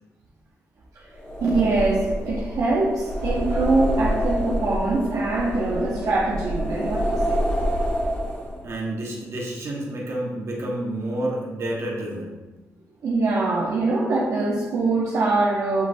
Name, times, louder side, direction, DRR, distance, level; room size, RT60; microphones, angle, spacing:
sound 1, 1.1-8.7, equal, 20° left, 1.0 m, -27 dB
voice 1, 1.4-7.4 13.0-15.8, right 3 dB, 75° right, -5 dB, 0.7 m, -23 dB
voice 2, 8.6-12.4, right 1 dB, 55° right, -2 dB, 1.2 m, -29 dB
6.9 x 3.0 x 2.6 m, 1.1 s
cardioid pair, 90°, 6 cm